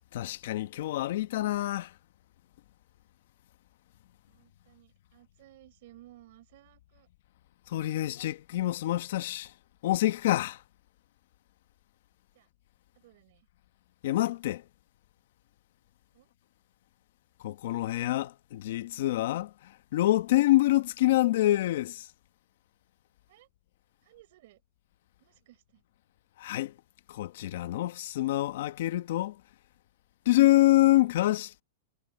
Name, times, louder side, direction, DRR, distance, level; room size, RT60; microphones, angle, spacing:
voice 1, 0.1-2.0 7.7-9.5 9.8-10.6 14.0-14.7 17.4-22.1 26.4-26.8 27.1-29.4 30.2-31.6, left 16 dB, 60° left, 1.1 m, -26 dB
voice 2, 4.3-7.1 12.3-12.5 13.0-13.5 16.1-16.3 23.3-23.5 24.0-24.6 25.2-25.8, right 16 dB, 55° right, 4.4 m, -57 dB
hypercardioid pair, 155°, 0 cm